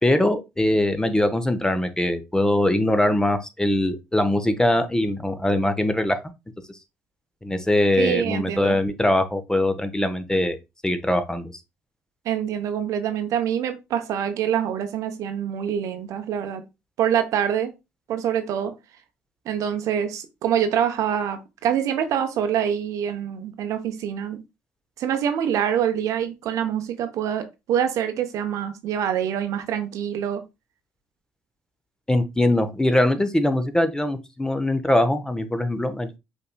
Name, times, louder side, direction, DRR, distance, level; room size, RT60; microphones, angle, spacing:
voice 1, 0.0-6.2 7.4-10.6 10.8-11.5 32.1-36.2, left 1 dB, 10° left, 0.8 m, -22 dB
voice 2, 8.0-8.8 12.2-16.6 17.0-17.7 18.1-18.7 19.5-24.4 25.0-30.4, right 9 dB, 60° right, 0.8 m, -25 dB
5.3 x 4.1 x 2.2 m
hypercardioid pair, 50°, 6 cm